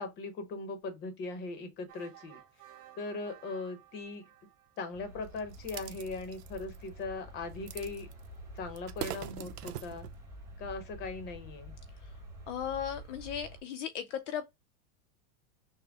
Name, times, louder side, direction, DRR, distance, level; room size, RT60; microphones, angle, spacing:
voice 1, 0.0-2.4 3.0-4.3 4.8-8.1 8.5-10.1 10.6-11.8, left 3 dB, 20° left, 0.8 m, -39 dB
sound 1, 1.9-5.3, right 12 dB, 30° right, 2.2 m, -56 dB
sound 2, 4.9-13.6, right 1 dB, 5° right, 1.1 m, -48 dB
sound 3, 5.4-6.9 7.7-8.3 8.6-10.2, right 11 dB, 85° right, 0.8 m, -42 dB
voice 2, 12.5-14.5, left 9 dB, 55° left, 0.6 m, -36 dB
6.1 x 2.2 x 3.4 m
supercardioid pair, 165°, 45 cm